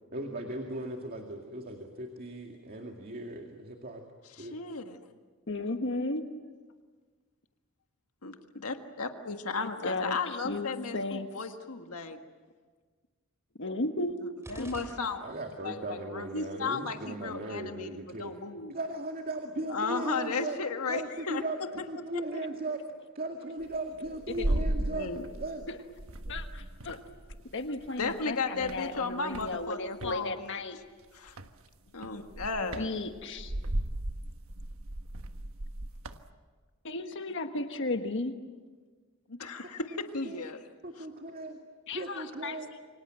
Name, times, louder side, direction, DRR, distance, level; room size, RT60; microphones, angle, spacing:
voice 1, 0.1-4.0 4.4-4.6 15.2-18.3 18.7-20.6 20.9-21.6 21.9-22.8 23.1-25.1 25.4-25.6 39.6-39.7 40.2-40.4 40.8-41.6 41.9-42.7, right 2 dB, 45° right, 2 dB, 2.3 m, -37 dB
voice 2, 4.4-5.0 8.2-12.2 14.2-15.3 15.6-18.7 19.7-21.7 22.1-22.4 24.5-25.2 28.0-30.6 31.1-31.4 31.9-33.0 39.3-40.6 41.0-41.1, left 4 dB, 90° left, 5 dB, 1.7 m, -35 dB
voice 3, 5.5-6.2 9.6-10.2 10.4-11.3 13.6-14.2 14.6-14.7 26.3-27.0 27.5-30.8 32.8-33.5 36.8-38.3 41.9-42.6, left 2 dB, 60° left, 6 dB, 1.4 m, -34 dB
sound 1, 14.4-15.7, right 1 dB, 10° right, 3.4 m, -48 dB
sound 2, 23.6-25.7 26.0-28.2 28.6-30.2 31.3-31.6 32.0-36.3, right 1 dB, 65° right, 1.4 m, -36 dB
28.5 x 25.0 x 7.7 m, 1.4 s
head